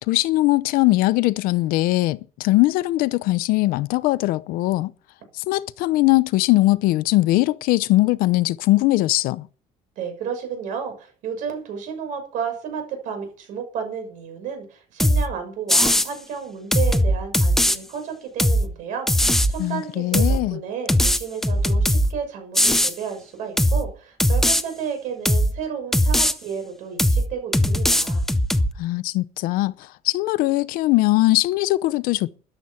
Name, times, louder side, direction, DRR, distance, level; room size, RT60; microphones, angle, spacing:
voice 1, 0.1-4.9 5.4-9.5 19.6-20.6 28.8-32.4, left 18 dB, 85° left, 0.8 m, -20 dB
voice 2, 10.0-28.2, right 7 dB, 60° right, 6.3 m, -32 dB
sound 1, 15.0-15.3 15.7-16.1 16.7-17.8 18.4-18.7 19.1-19.5 20.1-20.4 20.9-22.1 22.5-22.9 23.6-23.8 24.2-24.6 25.2-25.5 25.9-26.3 27.0-27.3 27.5-28.7, equal, ahead, 0.7 m, -19 dB
14.0 x 11.0 x 5.9 m
cardioid pair, 180°, 15 cm